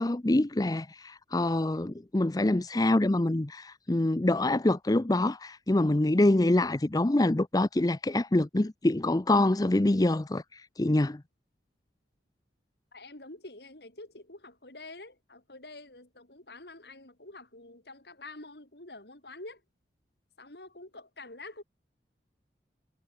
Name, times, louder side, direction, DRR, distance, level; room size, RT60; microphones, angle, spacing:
voice 1, 0.0-11.2, left 1 dB, 20° left, 0.6 m, -25 dB
voice 2, 12.9-19.6 20.4-21.6, left 2 dB, 65° left, 4.3 m, -47 dB
head